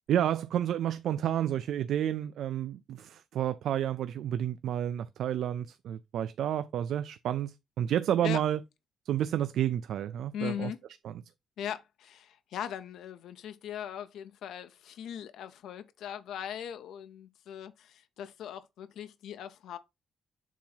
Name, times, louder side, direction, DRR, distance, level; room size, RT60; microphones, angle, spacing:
voice 1, 0.1-8.6 9.1-10.7 11.0-11.2, right 10 dB, 70° right, 0.4 m, -30 dB
voice 2, 10.3-10.8 11.6-19.8, left 9 dB, 80° left, 0.5 m, -39 dB
7.3 x 2.9 x 5.5 m
cardioid pair, 155°, 0 cm